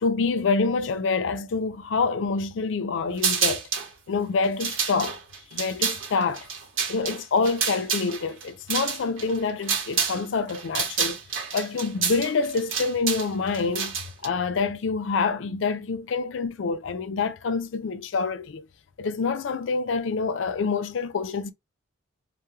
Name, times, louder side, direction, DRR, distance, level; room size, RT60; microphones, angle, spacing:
voice 1, 0.0-3.6 4.1-5.2 5.5-6.5 6.9-11.2 11.5-13.9 14.2-18.7 19.0-21.5, left 4 dB, 70° left, 0.4 m, -26 dB
sound 1, 3.2-3.9 4.4-10.2 10.5-14.3, right 6 dB, 90° right, 0.9 m, -28 dB
2.2 x 2.0 x 3.0 m
head